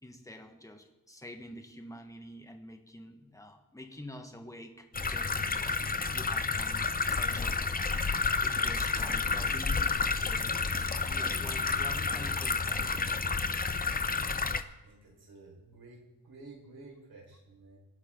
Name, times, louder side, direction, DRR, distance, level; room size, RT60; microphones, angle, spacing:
voice 1, 0.0-10.6 11.0-13.0, left 1 dB, 10° left, 5 dB, 1.4 m, -48 dB
sound 1, 4.9-14.6, left 4 dB, 25° left, 0.6 m, -30 dB
sound 2, 8.2-11.7 12.1-13.5, right 1 dB, 25° right, 1.7 m, -51 dB
voice 2, 14.8-17.8, right 3 dB, 80° right, -1 dB, 4.9 m, -52 dB
24.0 x 9.7 x 3.8 m, 1.1 s
wide cardioid pair, 170°, 37 cm